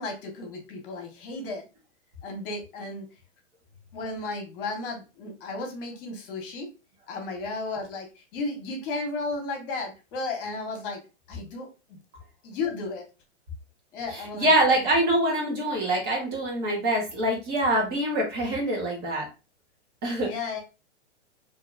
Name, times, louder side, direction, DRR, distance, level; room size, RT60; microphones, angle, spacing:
voice 1, 0.0-1.6 2.2-3.1 3.9-6.7 7.1-11.0 11.3-12.0 12.4-13.0 13.9-14.8 20.2-20.6, left 3 dB, 50° left, 2 dB, 1.1 m, -34 dB
voice 2, 14.1-19.2 20.0-20.3, right 1 dB, 30° right, -1 dB, 1.1 m, -24 dB
2.9 x 2.7 x 2.5 m, 0.30 s
hypercardioid pair, 130°, 36 cm